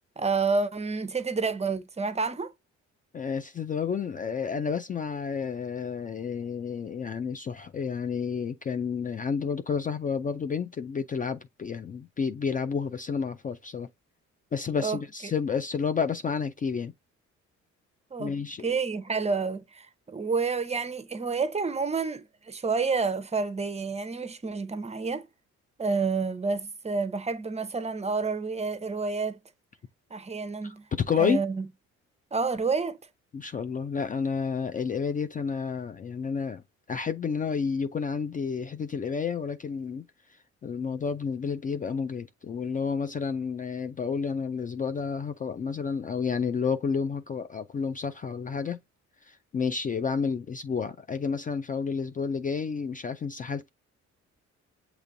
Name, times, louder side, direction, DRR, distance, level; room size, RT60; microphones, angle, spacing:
voice 1, 0.2-2.5 14.8-15.3 18.1-18.3 18.6-25.3 25.8-29.4 30.1-30.8 31.2-31.7 32.3-33.0, right 4 dB, 20° right, 0.6 m, -29 dB
voice 2, 3.1-13.9 14.5-16.9 18.2-18.6 30.6-30.7 31.1-31.5 33.3-36.6 36.9-40.0 40.6-48.8 49.2-53.7, left 6 dB, 30° left, 0.3 m, -30 dB
6.6 x 3.0 x 2.6 m
cardioid pair, 90°, 30 cm